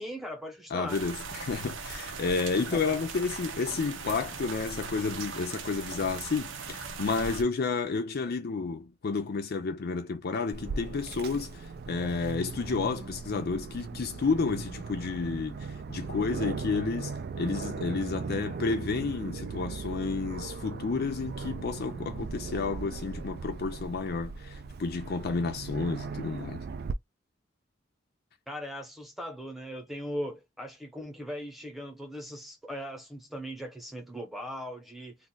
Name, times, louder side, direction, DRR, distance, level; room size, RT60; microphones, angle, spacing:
voice 1, 0.0-1.0 2.7-3.0 28.5-35.2, equal, ahead, 0.9 m, -39 dB
voice 2, 0.7-26.6, left 4 dB, 55° left, 0.5 m, -31 dB
sound 1, 0.9-7.4, right 5 dB, 80° right, 0.7 m, -39 dB
Aircraft, 10.5-26.9, right 4 dB, 55° right, 0.4 m, -38 dB
2.5 x 2.4 x 3.9 m
head